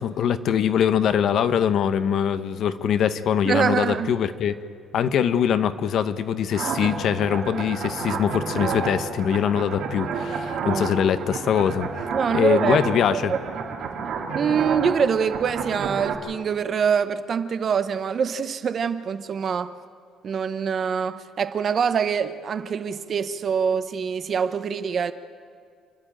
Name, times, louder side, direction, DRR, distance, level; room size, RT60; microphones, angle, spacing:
voice 1, 0.0-4.5 4.9-13.3, left 8 dB, 55° left, 0.9 m, -23 dB
voice 2, 3.4-4.1 10.6-10.9 12.1-12.8 13.1-13.6 14.3-19.7 20.2-25.1, right 6 dB, 40° right, 0.9 m, -24 dB
sound 1, 6.5-16.1, right 5 dB, 65° right, 2.8 m, -30 dB
28.5 x 11.5 x 8.8 m
cardioid pair, 150°, 0 cm